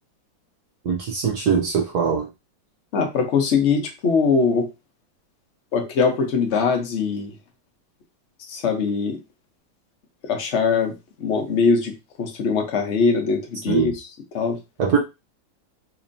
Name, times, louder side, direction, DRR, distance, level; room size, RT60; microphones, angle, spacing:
voice 1, 0.8-2.3 13.7-13.9 14.8-15.0, right 7 dB, 65° right, 1.1 m, -22 dB
voice 2, 2.9-4.7 5.7-7.3 8.5-9.2 10.3-10.9 11.2-11.9 12.2-14.0 14.3-14.6, left 5 dB, 50° left, 0.9 m, -21 dB
4.3 x 2.7 x 2.6 m
omnidirectional pair, 2.0 m